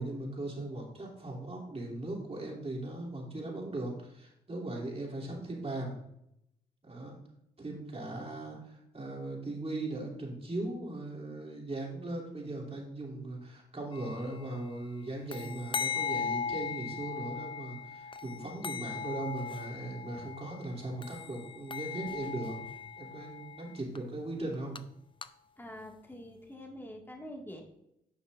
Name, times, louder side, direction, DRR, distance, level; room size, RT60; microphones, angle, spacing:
voice 1, 0.0-6.0 6.8-7.2 7.6-22.6 23.0-24.8, right 2 dB, 35° right, -1 dB, 2.9 m, -39 dB
sound 1, 13.9-14.4 15.3-20.7 21.0-24.0 24.5-24.8 25.2-25.3, left 6 dB, 30° left, 0.5 m, -38 dB
voice 2, 25.6-27.6, left 1 dB, 10° left, 1 dB, 1.9 m, -45 dB
10.0 x 6.1 x 2.6 m, 0.78 s
supercardioid pair, 55°, 17 cm